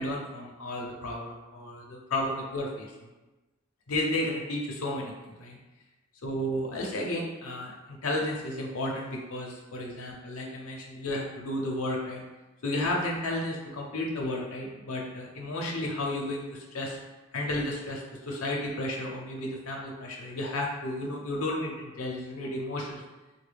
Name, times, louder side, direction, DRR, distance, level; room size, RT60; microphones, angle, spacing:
voice 1, 0.0-2.9 3.9-5.1 5.4-5.6 6.2-12.2 12.6-17.0 17.3-23.0, left 1 dB, 85° left, -1 dB, 0.7 m, -32 dB
3.7 x 2.2 x 3.3 m, 1.1 s
head